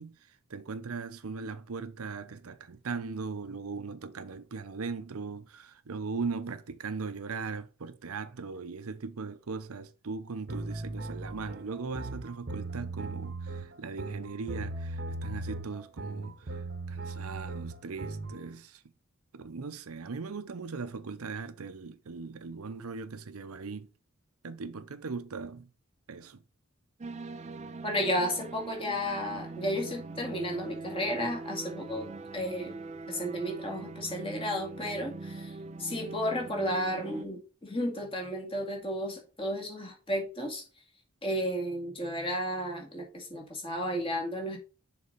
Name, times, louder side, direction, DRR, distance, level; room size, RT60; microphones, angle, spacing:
voice 1, 0.0-18.8 19.3-23.9 24.4-25.7 26.1-26.4 33.7-33.8, right 4 dB, 85° right, 0.7 m, -39 dB
sound 1, 10.5-18.4, right 2 dB, 50° right, 0.9 m, -38 dB
sound 2, 27.0-37.3, right 3 dB, 30° right, 0.4 m, -42 dB
voice 2, 27.8-32.1 32.3-32.8 33.1-40.6 41.2-44.6, equal, 25° left, 2.2 m, -33 dB
6.6 x 4.1 x 5.1 m
head